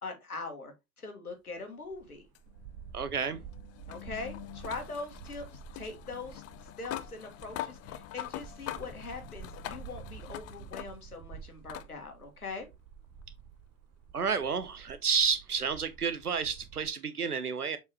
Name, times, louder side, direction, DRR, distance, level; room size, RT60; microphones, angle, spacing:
voice 1, 0.0-2.2 3.9-12.7, left 3 dB, 85° left, 1.8 m, -42 dB
sound 1, 1.8-16.9, right 8 dB, 35° right, 1.1 m, -50 dB
sound 2, 2.3-11.2 11.7-11.9 13.2-13.3 16.2-16.3, left 13 dB, 35° left, 0.7 m, -44 dB
voice 2, 2.9-3.4 14.1-17.8, right 6 dB, 85° right, 1.0 m, -30 dB
7.1 x 5.3 x 3.0 m
figure-of-eight pair, 80°, 44 cm